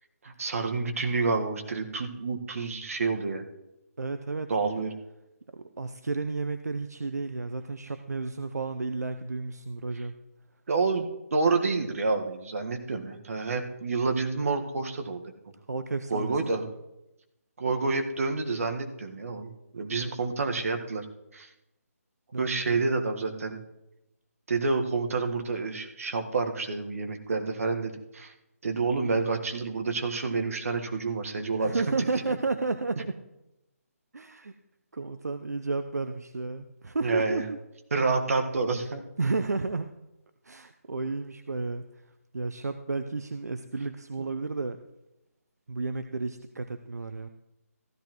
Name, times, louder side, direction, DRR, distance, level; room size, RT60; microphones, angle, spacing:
voice 1, 0.2-3.4 4.5-4.9 10.7-11.1 11.3-15.2 16.1-16.6 17.6-21.0 21.3-21.5 22.4-23.6 24.5-28.3 28.6-31.8 37.0-37.4 37.9-39.0 44.2-44.3, right 3 dB, 60° right, 5 dB, 1.5 m, -28 dB
voice 2, 4.0-4.5 5.5-10.1 15.7-16.7 22.3-22.8 31.6-33.2 34.1-34.5 34.9-37.6 39.2-39.9 40.4-41.8 42.3-44.8 45.7-47.3, right 3 dB, 85° right, 9 dB, 0.6 m, -32 dB
15.0 x 13.0 x 3.1 m, 0.92 s
figure-of-eight pair, 155°, 8 cm